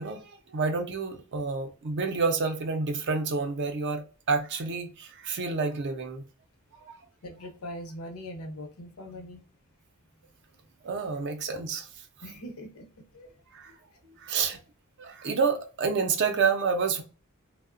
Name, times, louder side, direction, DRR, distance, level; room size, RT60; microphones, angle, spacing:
voice 1, 0.0-6.2 6.8-6.9 10.8-11.9 13.5-13.7 14.2-14.6 15.0-17.0, right 5 dB, 55° right, 0.4 m, -29 dB
voice 2, 7.2-9.4 11.0-11.3 12.2-12.9 13.1-13.3, equal, 80° left, 0.7 m, -41 dB
2.7 x 2.0 x 2.4 m
head